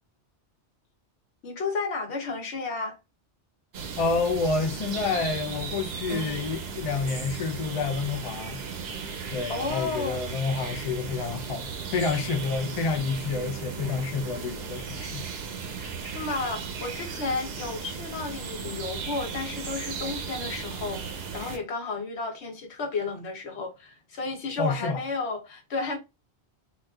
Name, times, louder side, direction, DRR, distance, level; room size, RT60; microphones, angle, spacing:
voice 1, 1.4-3.0 9.5-10.3 15.8-26.0, left 3 dB, 70° left, 1.2 m, -32 dB
sound 1, 3.7-21.6, right 5 dB, 65° right, 0.8 m, -36 dB
voice 2, 4.0-8.6 9.3-15.3 24.6-25.0, left 4 dB, 55° left, 0.4 m, -29 dB
4.0 x 2.4 x 2.3 m
omnidirectional pair, 1.2 m